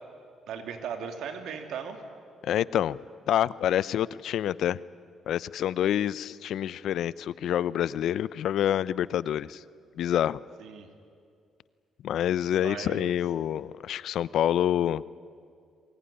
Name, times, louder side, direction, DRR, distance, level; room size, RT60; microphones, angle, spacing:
voice 1, 0.5-2.0 10.6-10.9 12.5-13.2, right 7 dB, 80° right, 6 dB, 2.7 m, -37 dB
voice 2, 2.4-3.0 3.3-4.8 5.3-9.6 10.0-10.4 12.0-15.0, left 11 dB, 75° left, 20 dB, 0.6 m, -27 dB
23.5 x 20.5 x 10.0 m, 2.3 s
cardioid pair, 90°, 0 cm